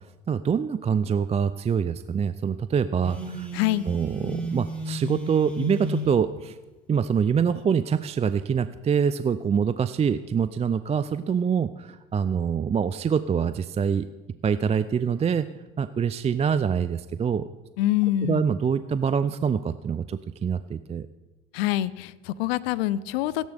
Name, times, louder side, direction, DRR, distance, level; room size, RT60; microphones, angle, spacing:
voice 1, 0.3-3.5 3.9-6.6 6.9-14.1 14.4-15.5 15.8-17.5 18.2-21.1, right 7 dB, 20° right, 13 dB, 0.4 m, -25 dB
Telephone, 3.0-6.1, equal, 5° left, 3.3 m, -32 dB
voice 2, 3.5-3.9 17.8-18.5 21.5-23.5, left 14 dB, 85° left, 18 dB, 0.6 m, -25 dB
17.5 x 10.5 x 3.5 m, 1.2 s
supercardioid pair, 80°, 30 cm